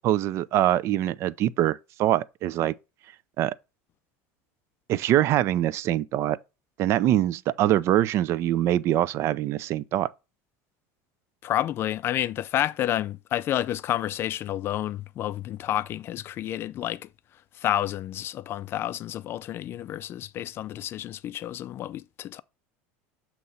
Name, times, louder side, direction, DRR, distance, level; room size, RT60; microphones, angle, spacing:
voice 1, 0.0-2.7 3.4-3.5 4.9-6.4 6.8-10.1, right 13 dB, 45° right, 0.4 m, -24 dB
voice 2, 11.4-17.1 17.5-22.4, left 12 dB, 40° left, 0.3 m, -30 dB
7.5 x 2.9 x 5.5 m
supercardioid pair, 120°, 6 cm